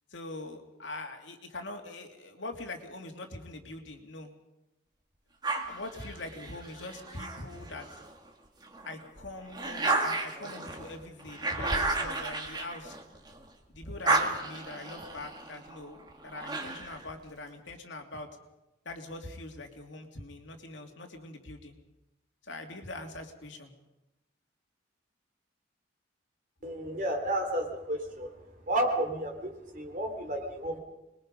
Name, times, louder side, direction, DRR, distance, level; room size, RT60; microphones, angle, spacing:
voice 1, 0.1-4.3 5.5-7.9 8.9-12.9 13.7-16.0 16.2-18.3 18.8-21.7 22.4-23.7, left 2 dB, 75° left, 4 dB, 2.6 m, -43 dB
sound 1, 5.4-8.1 8.6-13.4 13.8-17.1, right 3 dB, 20° right, 2.0 m, -33 dB
voice 2, 26.6-28.3 28.7-30.8, right 1 dB, 45° right, 3 dB, 3.5 m, -32 dB
26.0 x 21.0 x 5.3 m, 0.97 s
head